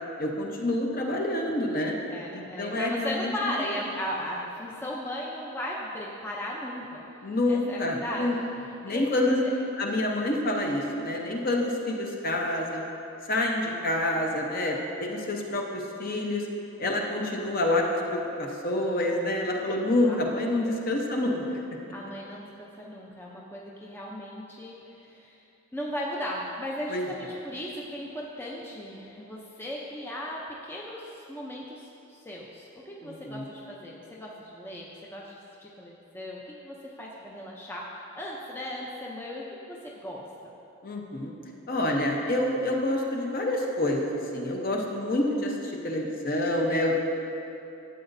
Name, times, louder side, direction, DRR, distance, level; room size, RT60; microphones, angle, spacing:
voice 1, 0.2-1.9 2.3-3.3 7.2-8.4 8.8-9.4 9.8-12.8 13.3-16.4 16.8-21.4 26.9-27.0 33.0-33.4 40.8-41.3 41.7-47.0, left 1 dB, 45° left, 0 dB, 0.8 m, -27 dB
voice 2, 2.1-7.0 7.5-9.5 20.0-20.2 20.6-20.8 21.9-25.4 25.7-40.5, equal, 10° left, -4 dB, 0.5 m, -37 dB
12.5 x 8.0 x 2.6 m, 2.9 s
head